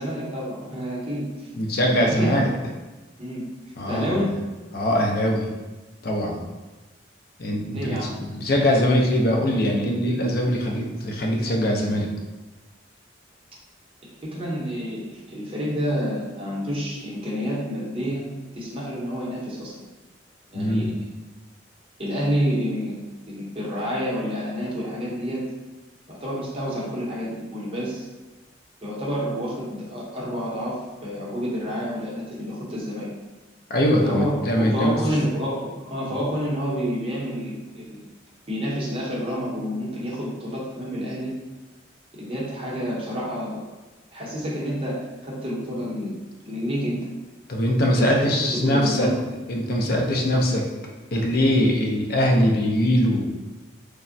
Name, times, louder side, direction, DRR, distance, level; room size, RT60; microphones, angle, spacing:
voice 1, 0.0-1.3 1.9-2.4 3.2-3.4 3.9-4.3 7.7-8.1 14.0-18.2 18.6-19.8 20.5-20.9 22.0-25.4 26.1-28.1 28.8-33.1 34.0-38.1 38.5-41.3 42.2-43.6 44.1-46.1 46.4-47.0 48.0-49.2, equal, 30° right, -6 dB, 0.7 m, -29 dB
voice 2, 1.6-2.5 3.8-4.2 4.7-5.5 6.0-6.4 7.4-12.1 20.5-20.9 33.7-35.0 47.5-49.1 49.5-50.7 51.1-53.3, equal, 55° left, 0 dB, 0.4 m, -22 dB
3.3 x 2.1 x 2.5 m, 1.2 s
head